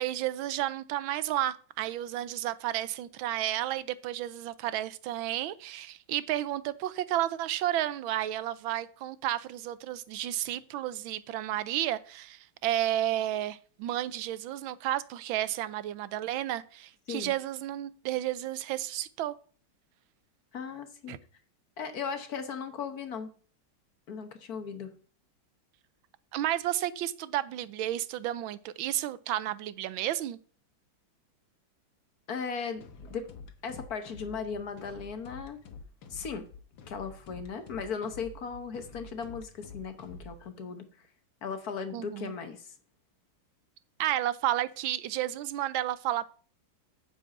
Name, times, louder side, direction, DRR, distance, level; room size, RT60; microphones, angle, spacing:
voice 1, 0.0-19.3 21.1-21.2 26.3-30.4 41.9-42.3 44.0-46.3, right 13 dB, 90° right, 1.4 m, -32 dB
voice 2, 20.5-21.2 21.8-23.3 24.1-24.9 32.3-33.3 33.6-35.6 36.1-36.5 36.9-41.1 41.4-42.7, left 6 dB, 55° left, 1.4 m, -37 dB
sound 1, 32.8-40.5, left 3 dB, 75° left, 1.8 m, -48 dB
9.4 x 4.9 x 7.8 m
omnidirectional pair, 2.1 m